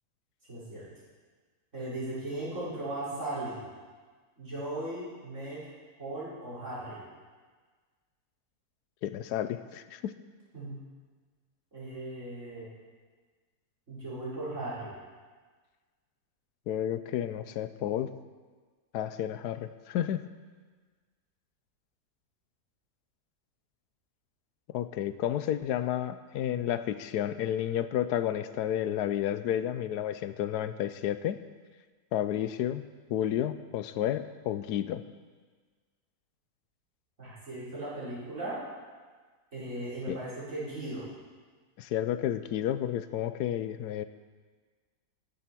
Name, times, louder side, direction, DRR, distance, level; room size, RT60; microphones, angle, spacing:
voice 1, 0.5-0.9 1.7-3.6 4.4-5.6 6.0-7.0 10.5-10.8 11.7-12.7 13.9-14.9 37.2-38.6 39.5-41.1, right 1 dB, 45° right, -9 dB, 5.5 m, -37 dB
voice 2, 9.0-10.1 16.7-18.1 18.9-20.2 24.7-31.4 32.1-32.8 33.1-35.0 40.1-40.2 41.8-44.0, left 11 dB, 80° left, 12 dB, 1.2 m, -31 dB
14.5 x 7.8 x 6.0 m, 1.4 s
omnidirectional pair, 1.7 m